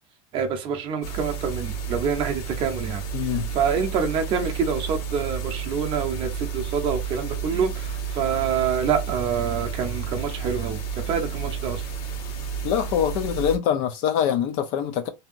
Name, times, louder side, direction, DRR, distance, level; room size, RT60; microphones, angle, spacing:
voice 1, 0.3-11.8, right 6 dB, 30° right, 0.6 m, -26 dB
sound 1, 1.0-13.6, right 6 dB, 80° left, 1.2 m, -31 dB
voice 2, 3.1-3.5 12.6-15.1, left 9 dB, 45° left, 0.4 m, -24 dB
2.7 x 2.7 x 2.5 m
supercardioid pair, 170°, 18 cm